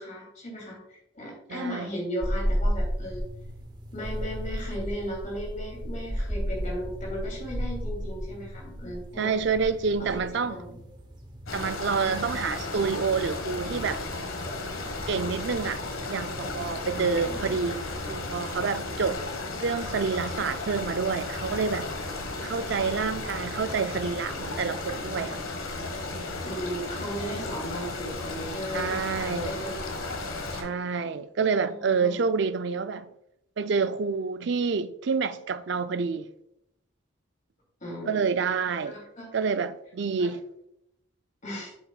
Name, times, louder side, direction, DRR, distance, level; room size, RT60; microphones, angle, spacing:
voice 1, 0.0-3.2 3.9-9.3 10.0-10.8 16.9-17.6 26.4-30.0 31.4-32.1 37.8-38.3 38.8-39.3 40.2-40.3 41.4-41.7, equal, 40° left, 2.8 m, -36 dB
voice 2, 1.5-1.9 9.2-10.6 11.5-14.0 15.1-15.8 16.1-19.2 19.6-21.9 22.4-25.4 28.7-29.6 30.5-33.1 33.6-36.3 38.1-39.0 39.3-40.4, right 5 dB, 55° right, 0.4 m, -28 dB
sound 1, 2.2-18.3, equal, 20° right, 0.8 m, -35 dB
sound 2, 11.5-30.6, left 2 dB, 85° left, 1.5 m, -34 dB
8.2 x 7.1 x 2.3 m
head